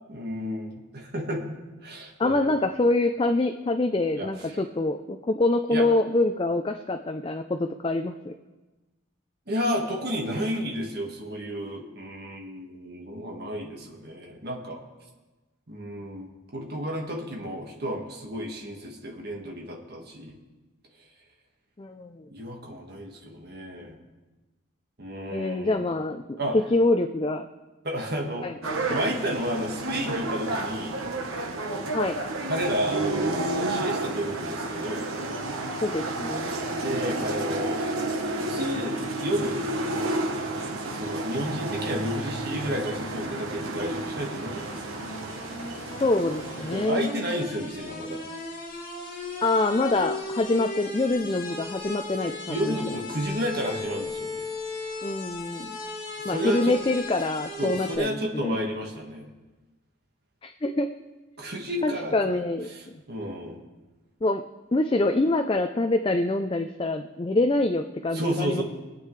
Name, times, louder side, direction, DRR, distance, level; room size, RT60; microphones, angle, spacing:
voice 1, 0.1-2.6 4.1-4.6 5.7-5.8 9.5-14.8 15.7-20.4 22.3-24.0 25.0-25.9 26.4-26.6 27.8-31.0 32.5-35.1 36.8-37.8 38.5-39.6 40.9-45.0 46.6-48.2 52.5-54.4 56.2-56.8 57.6-59.3 61.4-62.4 62.7-63.6 68.1-68.6, equal, 50° right, 0 dB, 1.6 m, -32 dB
voice 2, 2.2-8.3 21.8-22.2 25.3-27.5 28.4-29.0 31.9-32.2 35.8-36.5 46.0-47.1 49.4-52.8 55.0-55.8 56.2-58.6 60.4-60.9 61.8-62.7 64.2-64.4 64.7-68.6, left 2 dB, 25° left, 7 dB, 0.4 m, -25 dB
sound 1, 28.6-46.9, right 2 dB, 85° right, 1.2 m, -31 dB
sound 2, 41.2-58.0, left 2 dB, 45° left, 2.2 m, -38 dB
25.0 x 8.5 x 3.2 m, 1.2 s
head